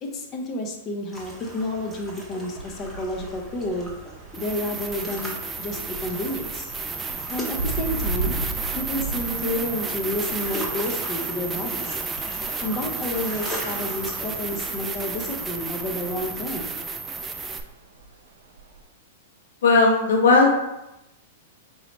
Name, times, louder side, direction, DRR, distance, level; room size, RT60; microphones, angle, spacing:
voice 1, 0.0-3.9 4.4-5.3 5.6-6.7 7.3-8.4 8.8-12.0 12.6-16.7, left 1 dB, 35° left, 2 dB, 0.7 m, -30 dB
sound 1, 1.1-15.9, right 1 dB, 10° left, 0.9 m, -40 dB
sound 2, 2.6-18.8, right 3 dB, 80° right, 0.7 m, -37 dB
sound 3, 4.3-17.6, right 4 dB, 20° right, 0.3 m, -32 dB
voice 2, 19.6-20.5, left 3 dB, 75° left, -1 dB, 0.9 m, -16 dB
4.6 x 2.9 x 3.1 m, 0.93 s
hypercardioid pair, 130°, 0 cm